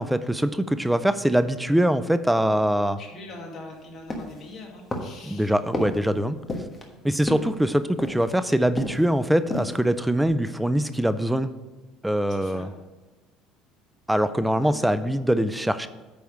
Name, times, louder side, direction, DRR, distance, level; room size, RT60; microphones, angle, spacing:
voice 1, 0.0-3.0 5.3-6.4 7.0-11.5 12.0-12.7 14.1-15.9, right 1 dB, 5° right, 12 dB, 0.4 m, -23 dB
voice 2, 3.0-5.6 12.3-12.7 14.6-15.2, left 2 dB, 40° left, -1 dB, 2.1 m, -43 dB
sound 1, 4.1-4.5 4.9-5.3 5.7-6.1 6.5-6.9 7.3-7.6 8.0-8.4 8.8-9.1 9.4-9.8 10.2-10.3, left 1 dB, 20° left, 1.3 m, -31 dB
9.2 x 3.5 x 6.3 m, 1.2 s
cardioid pair, 115°, 0 cm